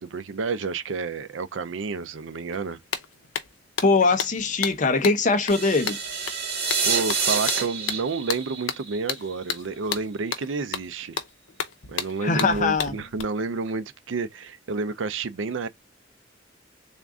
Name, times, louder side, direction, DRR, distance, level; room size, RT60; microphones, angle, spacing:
voice 1, 0.0-2.8 6.2-6.3 6.8-11.2 11.9-15.7, right 4 dB, 80° right, 0.5 m, -30 dB
sound 1, 2.5-2.6 2.9-13.2, left 7 dB, 90° left, 0.6 m, -33 dB
voice 2, 3.8-6.0 12.2-12.9, left 3 dB, 40° left, 0.6 m, -21 dB
sound 2, 5.5-9.6, right 5 dB, 60° right, 1.4 m, -28 dB
3.6 x 2.5 x 3.5 m
head